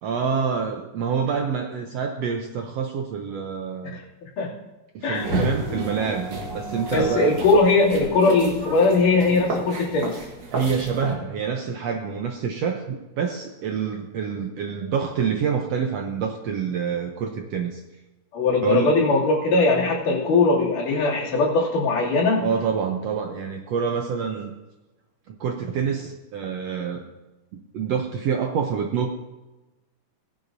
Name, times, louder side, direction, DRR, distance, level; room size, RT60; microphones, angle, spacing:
voice 1, 0.0-4.0 4.9-7.3 10.5-17.8 18.6-18.9 22.4-24.5 25.3-27.0 27.5-29.2, right 6 dB, 70° right, 3 dB, 1.6 m, -27 dB
voice 2, 3.9-4.6 5.0-5.3 6.9-10.2 18.3-22.5, left 3 dB, 75° left, -6 dB, 4.3 m, -20 dB
sound 1, 5.1-11.2, right 2 dB, 45° right, 1.8 m, -31 dB
18.5 x 11.0 x 2.7 m, 1.1 s
omnidirectional pair, 3.7 m